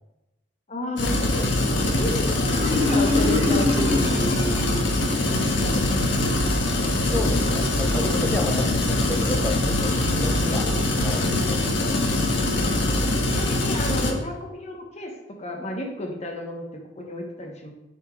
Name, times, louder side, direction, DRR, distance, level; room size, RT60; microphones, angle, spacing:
voice 1, 0.7-1.5 1.9-4.3 5.2-6.3 8.5-8.9 13.0-17.7, left 1 dB, 35° left, 2 dB, 1.1 m, -33 dB
sound 1, 1.0-14.1, left 1 dB, 80° left, 1.4 m, -23 dB
Marimba xylophone, 2.5-5.2, left 2 dB, 20° right, 1.4 m, -25 dB
voice 2, 7.0-11.7, left 2 dB, 10° left, 3 dB, 0.7 m, -31 dB
7.1 x 4.4 x 4.5 m, 0.97 s
head